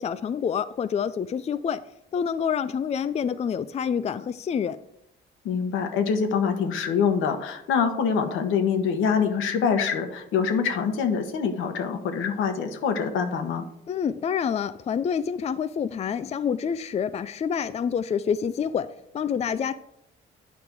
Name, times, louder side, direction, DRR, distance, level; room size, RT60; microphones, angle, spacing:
voice 1, 0.0-1.8 2.1-4.8 13.9-18.9 19.1-19.7, left 7 dB, 35° left, 13 dB, 0.4 m, -27 dB
voice 2, 5.4-13.6, left 6 dB, 85° left, 6 dB, 1.2 m, -25 dB
9.5 x 5.2 x 4.6 m, 0.77 s
cardioid pair, 90°, 20 cm